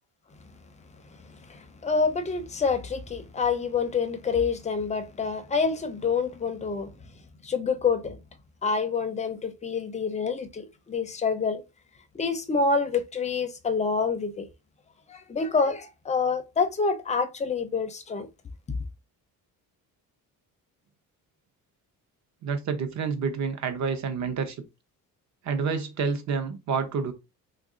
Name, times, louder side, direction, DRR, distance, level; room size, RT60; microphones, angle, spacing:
voice 1, 1.1-6.9 7.4-8.2 8.6-11.6 12.1-14.5 15.1-18.3, left 5 dB, 20° left, 0.4 m, -27 dB
voice 2, 22.4-24.6 25.4-27.1, right 5 dB, 50° right, 0.7 m, -28 dB
3.1 x 2.4 x 3.7 m
cardioid pair, 155°, 36 cm